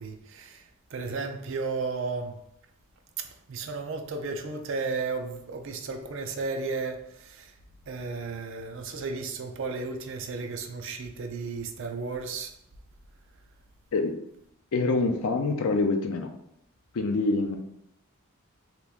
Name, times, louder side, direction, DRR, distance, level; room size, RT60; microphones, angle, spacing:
voice 1, 0.0-2.4 3.2-7.5 7.9-12.5, right 4 dB, 60° right, 0.4 m, -34 dB
voice 2, 14.7-16.3 16.9-17.6, left 3 dB, 80° left, 0.4 m, -25 dB
2.9 x 2.4 x 3.4 m
head